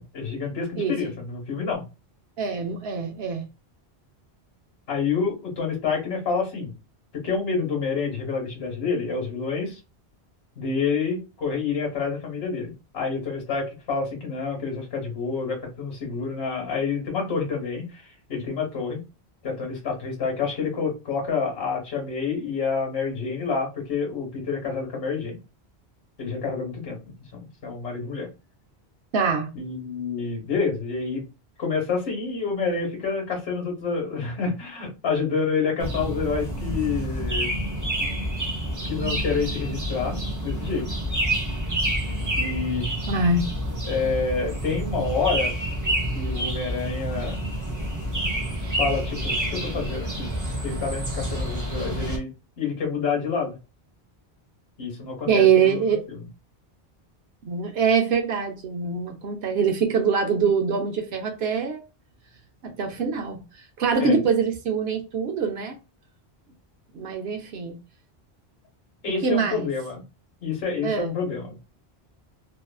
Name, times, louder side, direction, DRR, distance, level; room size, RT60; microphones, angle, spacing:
voice 1, 0.1-1.8 4.9-6.7 7.2-9.8 10.6-18.0 18.3-19.0 19.4-25.4 26.2-27.0 27.3-28.3 29.5-31.2 31.6-37.5 38.8-40.2 40.4-40.9 42.4-42.9 43.9-45.6 46.1-47.4 48.8-50.3 50.6-52.3 52.6-53.5 54.8-56.2 64.0-64.2 69.0-70.0 70.4-71.6, left 5 dB, 70° left, 1.2 m, -28 dB
voice 2, 0.8-1.1 2.4-3.4 29.1-29.5 43.1-43.5 55.3-56.0 57.5-61.8 62.6-63.4 63.8-65.8 66.9-67.7 69.2-69.7 70.8-71.1, right 5 dB, 75° right, 0.8 m, -23 dB
sound 1, 35.8-52.2, right 1 dB, 20° right, 0.7 m, -28 dB
2.6 x 2.4 x 2.3 m
omnidirectional pair, 1.1 m